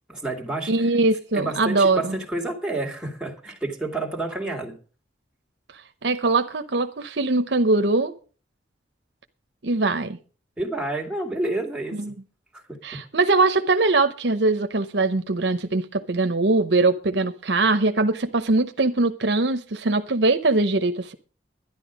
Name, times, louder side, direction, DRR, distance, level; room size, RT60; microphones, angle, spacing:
voice 1, 0.1-0.9 1.3-4.8 10.6-12.0 12.5-12.6, right 2 dB, 5° right, 2.4 m, -29 dB
voice 2, 0.7-2.2 6.0-8.1 9.6-10.2 11.9-12.1 12.8-21.1, right 3 dB, 65° right, 0.9 m, -22 dB
11.5 x 10.5 x 5.1 m
head